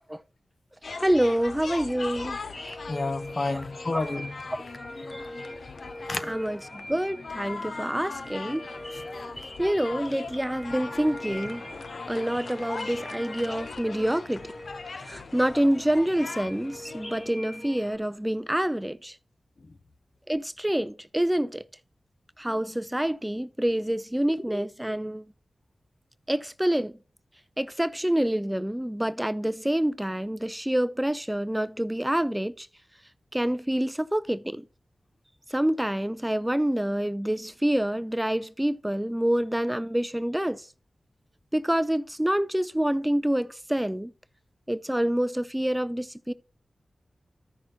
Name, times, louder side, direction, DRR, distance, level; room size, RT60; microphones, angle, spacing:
sound 1, 0.8-17.3, left 4 dB, 75° left, 0.5 m, -40 dB
voice 1, 1.0-2.4 6.3-8.6 9.6-11.6 12.1-14.5 15.0-19.2 20.3-21.6 22.4-25.2 26.3-26.9 27.6-32.7 33.3-34.6 35.5-40.7 41.5-44.1 44.7-46.3, right 1 dB, 10° right, 0.4 m, -27 dB
sound 2, 1.7-17.9, left 1 dB, 35° left, 3.3 m, -42 dB
voice 2, 2.9-4.4 6.0-6.3 8.9-9.0 10.9-11.0 19.6-19.8, left 3 dB, 50° left, 0.9 m, -31 dB
13.5 x 5.9 x 2.9 m
wide cardioid pair, 60°, 0 cm